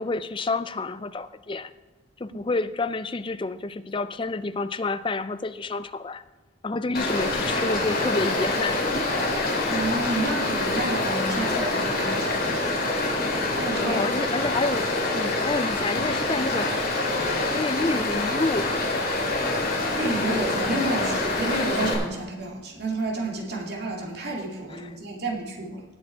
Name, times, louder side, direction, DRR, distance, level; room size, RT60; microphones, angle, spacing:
voice 1, 0.0-1.7 2.2-6.2 6.6-8.9 13.8-16.8 17.5-18.8 24.7-25.0, left 3 dB, 25° left, 12 dB, 0.4 m, -29 dB
Stream, 6.9-21.9, left 2 dB, 45° left, 3.3 m, -26 dB
voice 2, 9.7-12.7 13.5-14.1 19.9-25.8, right 2 dB, 55° right, -1 dB, 2.4 m, -30 dB
18.5 x 6.5 x 4.6 m, 1.2 s
head